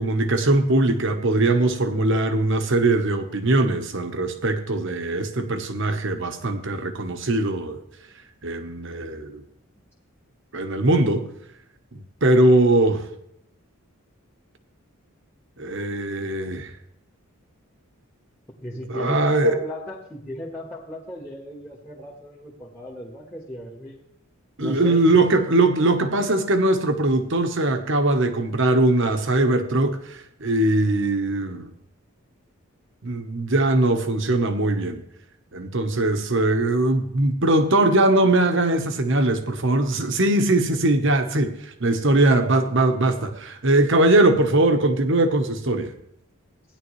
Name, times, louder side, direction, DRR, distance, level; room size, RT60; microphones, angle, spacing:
voice 1, 0.0-7.8 8.4-9.4 10.5-11.3 12.2-13.1 15.6-16.7 18.9-19.6 24.6-31.7 33.0-35.0 35.5-45.9, right 2 dB, 55° right, 1.1 m, -21 dB
voice 2, 18.6-24.0 24.6-25.2, left 1 dB, 10° left, 1.4 m, -36 dB
16.0 x 10.5 x 3.2 m
head